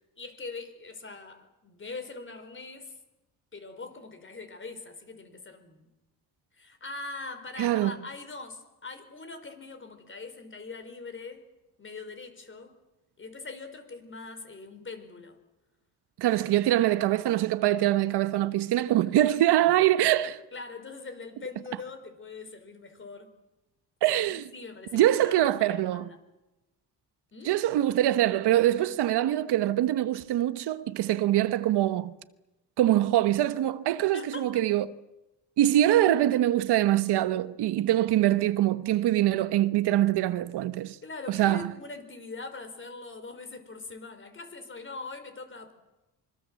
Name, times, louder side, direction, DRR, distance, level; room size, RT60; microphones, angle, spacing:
voice 1, 0.2-3.0 3.5-5.9 6.5-11.4 11.8-12.8 13.2-15.4 19.2-19.7 20.5-23.3 24.0-26.2 27.3-27.5 34.1-34.6 41.0-45.7, left 3 dB, 30° left, 4.8 m, -42 dB
voice 2, 7.6-7.9 16.2-20.4 24.0-24.5 24.9-26.1 27.4-32.1 32.8-34.9 35.6-41.0 41.3-41.7, right 13 dB, 75° right, 1.2 m, -24 dB
25.5 x 24.5 x 7.7 m
cardioid pair, 110°, 40 cm